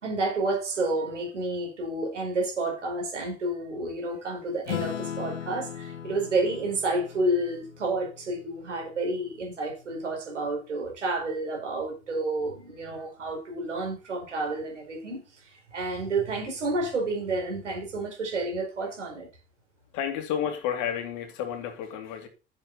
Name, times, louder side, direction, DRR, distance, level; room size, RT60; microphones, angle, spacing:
voice 1, 0.0-19.3, right 2 dB, 90° right, 5.0 m, -30 dB
Acoustic guitar / Strum, 4.7-9.5, left 9 dB, 85° left, 1.1 m, -38 dB
voice 2, 19.9-22.3, left 9 dB, 60° left, 2.7 m, -31 dB
10.5 x 8.0 x 4.1 m
hypercardioid pair, 70°, 35 cm